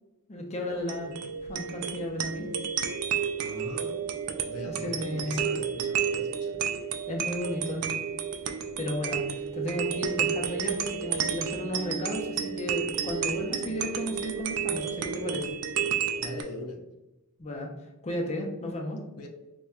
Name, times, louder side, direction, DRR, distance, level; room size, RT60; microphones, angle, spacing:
voice 1, 0.3-1.1 1.4-2.5 4.7-5.4 7.1-7.9 8.5-15.5 17.4-17.7 18.0-19.0, left 1 dB, 30° left, 1 dB, 0.5 m, -34 dB
sound 1, 0.7-16.4, right 7 dB, 75° right, 0.3 m, -31 dB
voice 2, 3.4-4.0 4.5-6.6 16.2-16.8 19.2-19.3, left 1 dB, 90° left, 4 dB, 0.5 m, -40 dB
4.1 x 2.2 x 2.3 m, 1.0 s
head